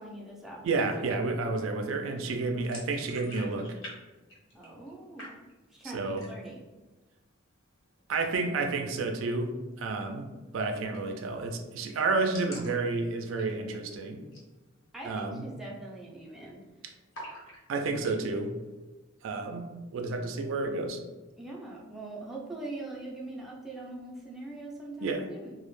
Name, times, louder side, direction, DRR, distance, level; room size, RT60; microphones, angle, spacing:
voice 1, 0.0-0.8 4.5-5.3 5.7-6.6 14.9-16.6 21.4-25.6, right 2 dB, ahead, -4 dB, 0.3 m, -42 dB
voice 2, 0.6-3.8 5.9-6.2 8.1-9.5 9.8-10.2 10.5-14.2 15.0-15.5 17.7-18.5 19.2-21.0 25.0-25.2, right 3 dB, 85° right, 4 dB, 0.3 m, -30 dB
sound 1, 2.6-4.0 4.2-4.9 5.2-5.7 6.1-6.6 6.9-7.0 7.4-8.0 9.7-9.9 10.2-10.3 10.5-10.6 10.9-11.3 11.6-11.7 11.8-13.9 14.2-14.5 14.8-14.9 15.5-15.8 16.0-16.6 17.1-18.2, equal, 85° left, 0.9 m, -47 dB
2.0 x 2.0 x 3.0 m, 1.2 s
head